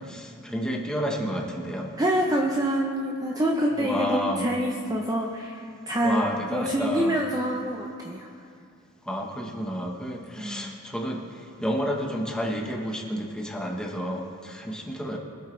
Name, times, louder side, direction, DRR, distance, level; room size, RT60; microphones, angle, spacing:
voice 1, 0.1-1.9 3.8-4.5 6.0-7.2 9.1-11.2 11.6-15.2, equal, 5° left, 0 dB, 1.2 m, -30 dB
voice 2, 2.0-6.2 6.5-8.3 10.4-10.8, equal, 15° right, -1 dB, 0.7 m, -26 dB
23.0 x 8.2 x 3.3 m, 2.3 s
head